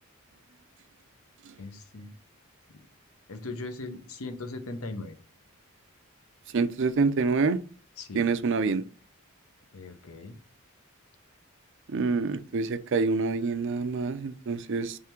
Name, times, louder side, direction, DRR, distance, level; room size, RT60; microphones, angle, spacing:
voice 1, 1.6-2.1 3.3-5.1 8.0-8.2 9.7-10.3, left 2 dB, 75° left, 0.8 m, -39 dB
voice 2, 6.5-7.6 8.1-8.8 11.9-15.0, right 4 dB, 55° right, 0.5 m, -26 dB
3.6 x 3.3 x 4.4 m
head